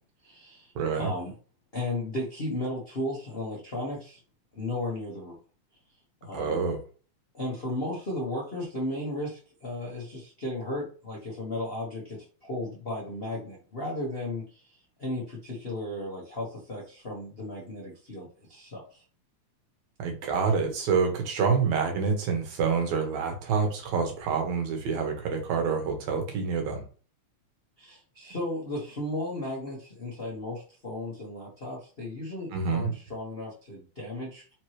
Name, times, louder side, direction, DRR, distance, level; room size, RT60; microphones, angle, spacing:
voice 1, 0.2-1.3 1.7-4.2 4.5-5.4 6.2-6.6 7.3-14.7 15.0-19.0 27.8-34.5, left 1 dB, 75° left, -5 dB, 0.5 m, -35 dB
voice 2, 0.8-1.1 6.3-6.8 20.0-26.8 32.5-32.9, right 5 dB, 75° right, 3 dB, 2.5 m, -27 dB
5.2 x 2.9 x 3.2 m, 0.38 s
omnidirectional pair, 3.3 m